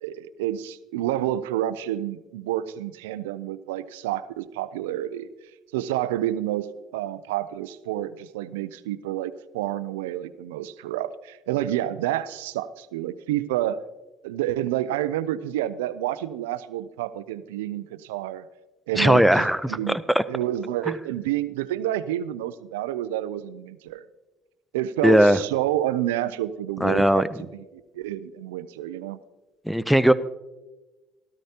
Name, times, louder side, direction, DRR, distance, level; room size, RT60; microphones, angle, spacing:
voice 1, 0.0-5.3 5.7-13.8 14.2-18.5 18.9-20.0 20.3-24.0 24.7-27.6 27.9-29.2, right 13 dB, 90° right, 16 dB, 0.4 m, -29 dB
voice 2, 19.0-20.2 25.0-25.4 26.8-27.3 29.7-30.1, equal, ahead, 13 dB, 0.6 m, -19 dB
13.5 x 13.0 x 2.8 m, 1.1 s
hypercardioid pair, 65°, 0 cm